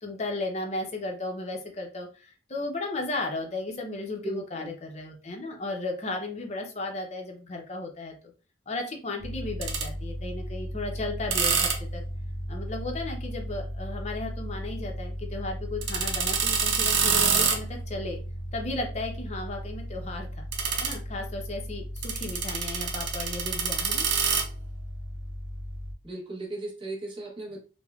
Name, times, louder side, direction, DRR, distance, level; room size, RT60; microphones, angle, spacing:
voice 1, 0.0-8.1 8.7-12.0 12.5-18.2 18.5-20.3 20.8-24.1, left 2 dB, 35° left, 2 dB, 0.6 m, -35 dB
voice 2, 4.2-4.7 26.0-27.6, right 2 dB, 25° right, -2 dB, 0.8 m, -36 dB
sound 1, 9.2-25.9, right 4 dB, 80° right, 0.5 m, -30 dB
3.5 x 2.1 x 2.3 m, 0.35 s
head